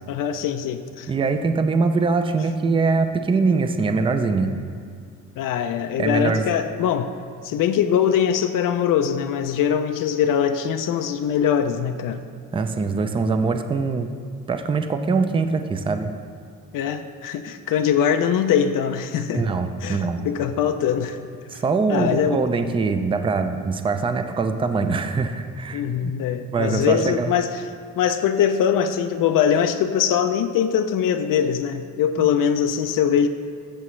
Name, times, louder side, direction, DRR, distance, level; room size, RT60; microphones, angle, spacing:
voice 1, 0.1-1.1 5.4-7.1 7.4-12.2 16.7-19.5 19.8-21.2 21.5-21.6 21.9-22.4 25.7-27.7 28.0-33.3, left 8 dB, 80° left, 8 dB, 0.5 m, -22 dB
voice 2, 1.1-4.5 6.0-6.5 12.5-14.1 14.5-16.1 19.3-20.3 21.5-26.1 26.5-27.3 32.2-32.3, right 4 dB, 15° right, 8 dB, 0.4 m, -23 dB
14.0 x 7.5 x 3.1 m, 2.2 s
cardioid pair, 160°, 32 cm